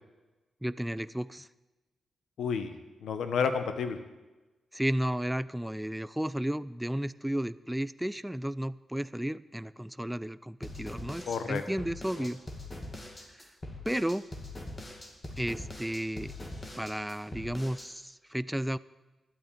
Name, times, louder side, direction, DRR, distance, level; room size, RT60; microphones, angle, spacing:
voice 1, 0.6-1.5 4.7-12.4 13.8-14.3 15.4-16.3 16.8-18.8, right 1 dB, 5° right, 16 dB, 0.4 m, -33 dB
voice 2, 2.4-4.0 11.3-11.6 12.2-12.3, left 6 dB, 85° left, 9 dB, 1.2 m, -31 dB
sound 1, 10.6-17.9, left 1 dB, 25° left, 2.3 m, -42 dB
12.0 x 8.9 x 9.2 m, 1.1 s
cardioid pair, 90°, 0 cm